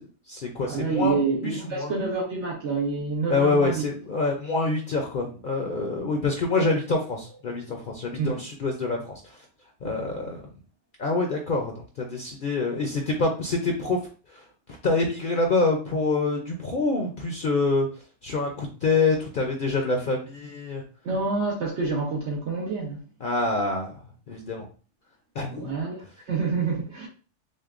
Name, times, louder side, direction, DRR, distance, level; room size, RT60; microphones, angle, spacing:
voice 1, 0.0-1.2 1.4-1.9 3.3-9.4 9.8-10.5 11.0-14.0 14.3-14.5 14.8-17.9 18.2-20.8 23.2-24.0 24.3-24.7 25.3-25.7, left 3 dB, 55° left, 0.7 m, -26 dB
voice 2, 0.6-3.9 6.6-6.7 8.2-8.4 21.0-23.0 25.5-27.1, right 4 dB, 70° right, 1.2 m, -27 dB
6.3 x 2.2 x 2.5 m
omnidirectional pair, 1.3 m